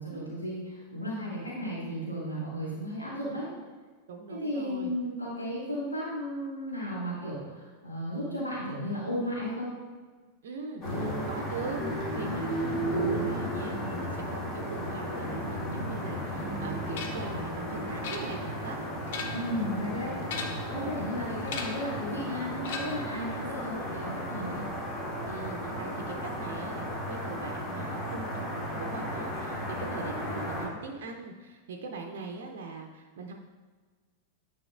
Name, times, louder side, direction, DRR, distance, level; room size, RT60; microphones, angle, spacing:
voice 1, 0.0-3.5 4.3-9.7 19.3-20.4 20.7-24.6, equal, 80° left, -6 dB, 2.0 m, -34 dB
voice 2, 4.1-4.9 10.4-18.8 20.6-20.9 25.3-33.3, right 4 dB, 55° right, 2 dB, 0.6 m, -41 dB
sound 1, 10.8-30.7, equal, 30° left, 2.1 m, -34 dB
sound 2, 17.0-17.3 18.0-18.6 19.0-19.6 20.2-20.8 21.5-21.9 22.6-23.1, left 5 dB, 55° left, 0.8 m, -38 dB
9.7 x 5.5 x 2.5 m, 1.5 s
figure-of-eight pair, 90°, 0 cm